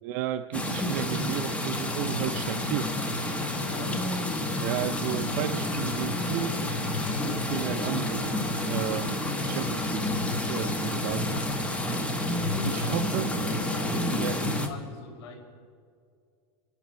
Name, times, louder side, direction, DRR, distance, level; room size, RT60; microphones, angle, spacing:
voice 1, 0.0-2.9 4.6-6.6 7.2-8.4 8.7-10.0 10.5-11.4 12.6-13.3 14.2-14.4, right 12 dB, 50° right, 8 dB, 0.5 m, -33 dB
sound 1, 0.5-14.7, left 1 dB, 10° left, 1.1 m, -29 dB
sound 2, 0.5-10.5, right 2 dB, 10° right, 3.3 m, -46 dB
sound 3, 2.0-8.8, left 2 dB, 30° left, 3.9 m, -52 dB
voice 2, 3.4-4.0 11.2-11.5 12.6-15.4, left 2 dB, 80° left, 0 dB, 4.8 m, -43 dB
27.5 x 11.5 x 4.4 m, 2.3 s
supercardioid pair, 160°, 13 cm